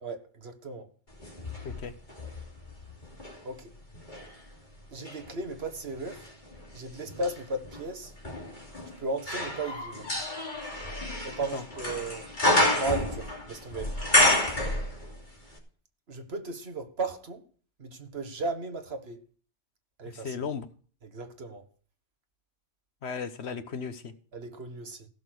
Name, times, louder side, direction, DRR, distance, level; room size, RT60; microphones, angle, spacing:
voice 1, 0.0-0.9 3.4-3.7 4.9-6.3 6.7-8.1 9.0-10.1 11.2-12.3 12.8-14.1 16.1-17.4 17.8-19.2 20.0-20.4 21.0-21.6 24.3-25.1, right 3 dB, 60° right, 1.6 m, -35 dB
sound 1, 1.2-3.4 3.9-15.3 15.6-15.7, left 1 dB, 40° left, 3.1 m, -30 dB
voice 2, 20.0-20.7 23.0-24.1, left 6 dB, 65° left, 1.3 m, -35 dB
15.5 x 6.7 x 6.3 m
omnidirectional pair, 1.2 m